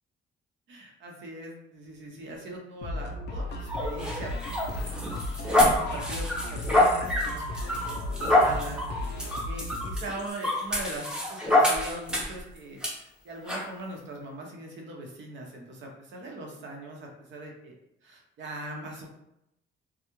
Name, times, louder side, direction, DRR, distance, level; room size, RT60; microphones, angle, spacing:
voice 1, 0.7-5.2 5.4-8.9 9.4-17.7 18.0-19.1, right 2 dB, 65° right, 0 dB, 0.7 m, -41 dB
sound 1, 2.8-10.2, left 1 dB, 60° left, 0.4 m, -35 dB
sound 2, 3.7-12.4 12.8-12.9 13.5-13.7, left 1 dB, 5° right, 0.6 m, -26 dB
2.3 x 2.0 x 2.9 m, 0.82 s
cardioid pair, 90°, 20 cm